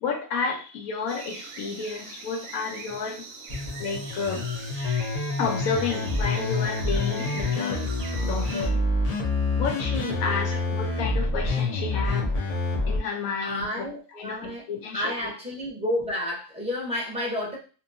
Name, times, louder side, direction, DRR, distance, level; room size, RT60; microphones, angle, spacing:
voice 1, 0.0-3.2 3.8-4.5 5.4-8.0 8.2-8.8 9.6-12.3 12.9-13.9 14.1-15.2, left 5 dB, 80° left, 3 dB, 1.1 m, -31 dB
sound 1, 1.1-8.7, right 4 dB, 70° right, 0.9 m, -42 dB
sound 2, 3.5-13.0, left 2 dB, 65° left, 0.3 m, -27 dB
voice 2, 13.4-14.7 14.9-17.6, left 1 dB, 5° right, -5 dB, 0.6 m, -30 dB
2.7 x 2.2 x 2.6 m, 0.35 s
omnidirectional pair, 1.5 m